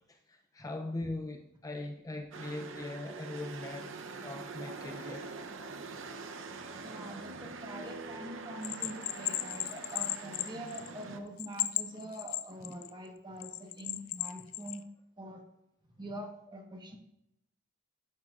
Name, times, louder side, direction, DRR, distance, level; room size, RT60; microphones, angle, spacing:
voice 1, 0.1-3.9 4.2-5.3, left 2 dB, 15° left, 5 dB, 0.5 m, -40 dB
sound 1, 2.3-11.2, right 4 dB, 65° right, 0.8 m, -44 dB
voice 2, 6.8-14.8 15.2-15.4 16.0-17.0, right 1 dB, 20° right, 3 dB, 1.3 m, -44 dB
Bell, 8.6-11.0 11.4-12.9 13.4-14.8, left 14 dB, 75° left, 0.5 m, -35 dB
10.5 x 9.6 x 2.5 m, 0.82 s
head